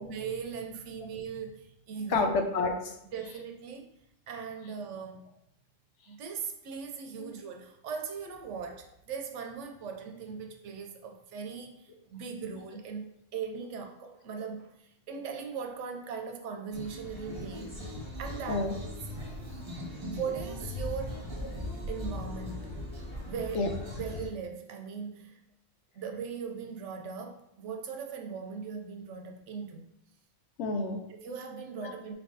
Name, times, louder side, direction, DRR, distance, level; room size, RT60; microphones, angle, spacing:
voice 1, 0.0-2.3 3.1-3.9 4.3-5.3 6.1-17.8 18.2-18.6 20.0-21.3 21.9-22.9 23.3-23.7 24.0-25.4 25.9-29.9 31.1-32.1, right 6 dB, 75° right, 3 dB, 0.9 m, -39 dB
voice 2, 2.1-2.9 7.2-7.3 18.5-18.7 21.4-21.5 23.5-23.7 30.6-31.0 31.8-31.9, left 3 dB, 70° left, 4 dB, 0.9 m, -29 dB
sound 1, 16.7-24.3, left 1 dB, 25° right, 0.7 m, -39 dB
4.3 x 3.4 x 2.6 m, 0.78 s
omnidirectional pair, 1.3 m